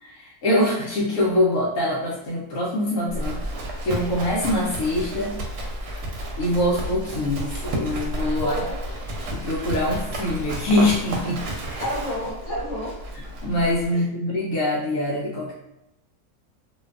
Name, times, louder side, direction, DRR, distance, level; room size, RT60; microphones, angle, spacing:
voice 1, 0.0-3.4 3.8-5.4 6.4-8.6 9.3-11.8 13.4-15.5, left 1 dB, 70° left, -6 dB, 0.9 m, -24 dB
Livestock farm animals working animals, 3.1-13.9, right 1 dB, 90° right, 1.1 m, -31 dB
voice 2, 8.3-8.8 11.8-13.0 13.9-14.1, equal, 30° left, -7 dB, 0.8 m, -30 dB
2.6 x 2.3 x 2.3 m, 0.88 s
omnidirectional pair, 1.5 m